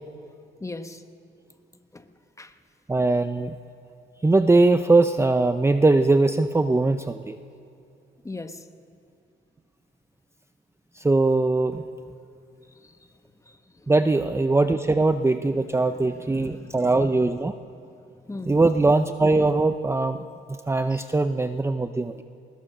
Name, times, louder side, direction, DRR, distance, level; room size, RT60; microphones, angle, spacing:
voice 1, 0.6-1.0 1.9-2.5 8.2-8.7 12.7-13.1 13.5-13.9 15.8-17.0 17.8-17.9 18.2-18.6 20.9-21.0, left 2 dB, 15° left, 8 dB, 1.2 m, -40 dB
voice 2, 2.9-3.6 4.2-7.4 11.0-11.8 13.9-17.5 18.5-20.2 20.5-22.2, right 3 dB, 15° right, 9 dB, 0.7 m, -21 dB
21.0 x 20.0 x 6.6 m, 2.6 s
cardioid pair, 90°, 20 cm